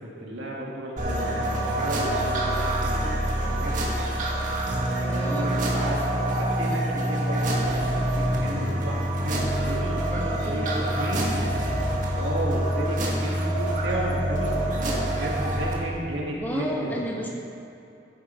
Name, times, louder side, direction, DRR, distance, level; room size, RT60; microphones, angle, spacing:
voice 1, 0.0-3.8 5.0-11.3 12.1-17.0, right 1 dB, 85° right, -3 dB, 1.9 m, -33 dB
sound 1, 1.0-15.7, right 1 dB, 45° right, 1.9 m, -26 dB
voice 2, 5.0-5.6 9.7-11.0 12.0-12.3 16.3-17.3, equal, 10° left, -2 dB, 1.5 m, -34 dB
15.0 x 9.9 x 4.5 m, 2.7 s
head